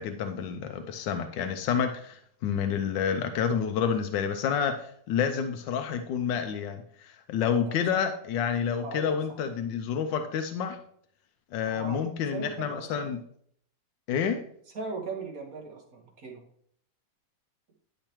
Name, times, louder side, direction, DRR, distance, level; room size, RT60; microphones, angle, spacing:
voice 1, 0.0-10.8 11.5-13.2 14.1-14.4, left 7 dB, 85° left, 7 dB, 1.3 m, -29 dB
voice 2, 7.4-8.0 8.8-9.5 11.7-13.1 14.7-16.4, right 4 dB, 50° right, 0 dB, 1.8 m, -39 dB
10.0 x 6.6 x 3.0 m, 0.66 s
omnidirectional pair, 1.9 m